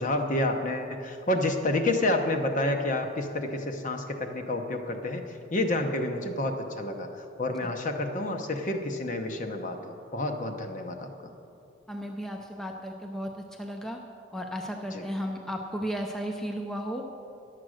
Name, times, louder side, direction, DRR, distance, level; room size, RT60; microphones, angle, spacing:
voice 1, 0.0-5.2 5.5-7.1 7.4-11.3 14.9-15.1, left 1 dB, 40° left, 5 dB, 0.8 m, -29 dB
voice 2, 11.9-14.0 14.3-17.0, equal, ahead, 2 dB, 0.5 m, -34 dB
10.5 x 7.6 x 6.3 m, 2.7 s
head